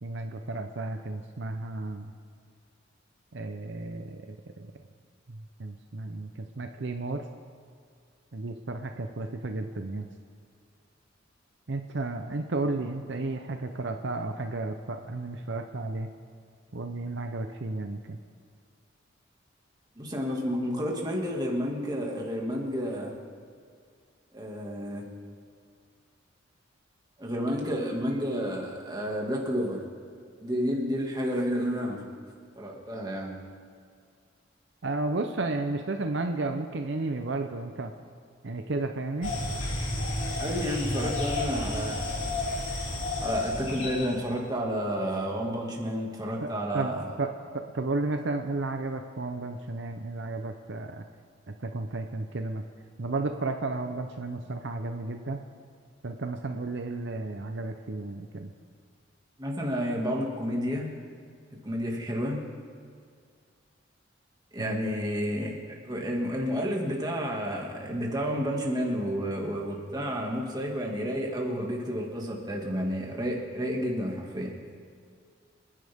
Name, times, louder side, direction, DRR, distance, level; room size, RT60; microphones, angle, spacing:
voice 1, 0.0-2.1 3.3-4.7 5.3-7.2 8.3-10.1 11.7-16.1 16.7-18.2 34.8-37.9 38.4-39.4 46.4-51.0 51.6-52.6 53.0-55.4 56.0-58.5 64.6-64.8, right 2 dB, 65° right, 5 dB, 0.7 m, -33 dB
voice 2, 20.0-23.2 24.3-25.0 27.2-29.8 30.4-32.0 32.6-33.4 40.4-42.0 43.2-47.1 59.4-60.9 61.6-62.4 64.5-74.5, equal, 20° right, -1 dB, 2.1 m, -30 dB
sound 1, 39.2-44.2, left 2 dB, 85° left, 2.9 m, -31 dB
28.0 x 10.0 x 3.6 m, 2.2 s
head